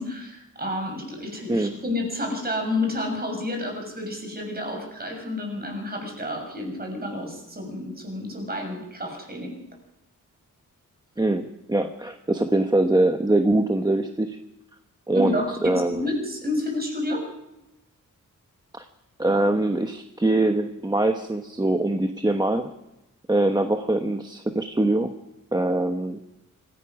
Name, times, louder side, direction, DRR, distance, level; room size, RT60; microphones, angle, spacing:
voice 1, 0.0-9.6 15.1-17.3, left 1 dB, 30° right, 2 dB, 6.6 m, -30 dB
voice 2, 11.2-14.4 15.1-16.1 18.7-18.8 19.2-22.7 23.3-25.1 25.5-26.2, right 2 dB, 15° right, 5 dB, 1.1 m, -23 dB
26.0 x 16.5 x 6.1 m, 0.93 s
wide cardioid pair, 140°, 32 cm